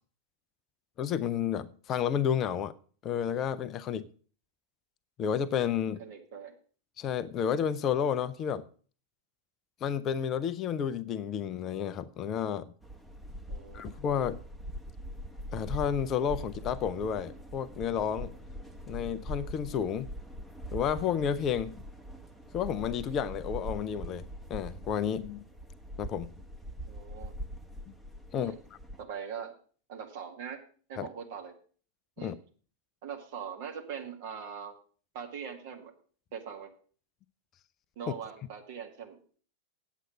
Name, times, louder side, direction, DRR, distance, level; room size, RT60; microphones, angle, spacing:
voice 1, 1.0-2.7 3.0-4.1 5.2-6.0 7.0-8.7 9.8-12.7 13.7-14.4 15.5-18.3 18.9-20.1 20.7-21.8 22.5-25.4 26.0-26.3 27.9-28.0 28.3-28.5 31.0-31.1 32.2-32.4, left 8 dB, 30° left, 0.5 m, -31 dB
voice 2, 6.0-6.5 13.5-13.9 26.9-27.3 28.3-28.6 29.0-29.5 29.9-30.6 30.9-31.5 32.2-32.4 33.0-34.7 35.1-35.9 36.3-36.7 38.0-39.4, right 7 dB, 50° right, 2.0 m, -41 dB
sound 1, 12.8-29.0, equal, ahead, 1.0 m, -42 dB
9.2 x 7.8 x 6.1 m
figure-of-eight pair, 90°, 0 cm